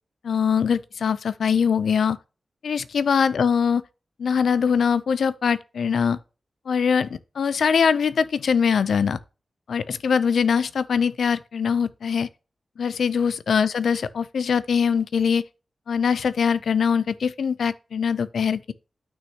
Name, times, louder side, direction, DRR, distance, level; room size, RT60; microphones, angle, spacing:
voice 1, 0.2-2.2 2.6-3.8 4.2-6.2 6.7-9.2 9.7-12.3 12.8-15.4 15.9-18.7, left 6 dB, 90° left, 0.5 m, -22 dB
8.9 x 6.2 x 2.8 m
wide cardioid pair, 170°, 0 cm